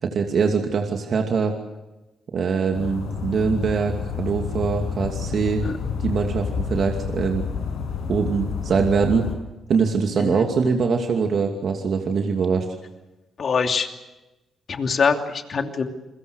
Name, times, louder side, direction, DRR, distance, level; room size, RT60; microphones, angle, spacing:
voice 1, 0.0-1.5 2.3-5.7 6.0-7.4 8.1-9.2 9.7-12.7, right 5 dB, 65° right, 3 dB, 2.6 m, -23 dB
sound 1, 2.7-9.3, left 6 dB, 85° left, 6.1 m, -29 dB
voice 2, 13.4-13.9 14.7-15.9, left 5 dB, 55° left, 5 dB, 2.8 m, -23 dB
29.0 x 22.0 x 6.5 m, 1.0 s
cardioid pair, 65°, 0 cm